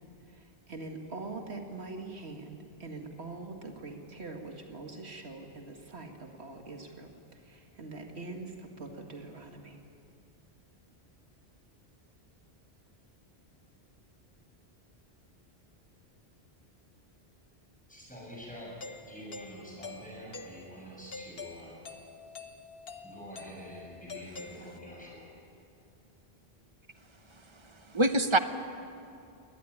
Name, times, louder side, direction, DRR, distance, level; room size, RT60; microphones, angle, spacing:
voice 1, 0.3-9.8, right 3 dB, 85° right, 3 dB, 2.2 m, -43 dB
voice 2, 17.9-21.8 23.0-25.3, equal, 5° left, -3 dB, 7.2 m, -46 dB
Doorbell, 18.8-25.1, left 4 dB, 65° left, 1.4 m, -47 dB
voice 3, 27.3-28.4, right 2 dB, 30° right, 9 dB, 1.1 m, -27 dB
22.5 x 19.0 x 9.9 m, 2.6 s
omnidirectional pair, 1.1 m